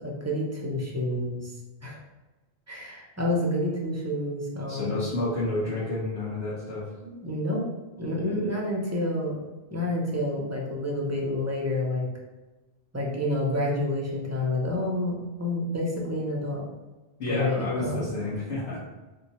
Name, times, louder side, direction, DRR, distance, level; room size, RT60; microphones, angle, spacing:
voice 1, 0.0-1.5 1.8-2.0 2.7-5.1 7.0-7.6 8.0-9.4 9.7-12.1 12.9-16.6 17.3-18.1, left 1 dB, 25° right, -3 dB, 0.4 m, -29 dB
voice 2, 4.7-6.8 17.2-18.8, left 2 dB, 70° left, -9 dB, 1.2 m, -30 dB
2.9 x 2.2 x 4.1 m, 1.1 s
omnidirectional pair, 1.2 m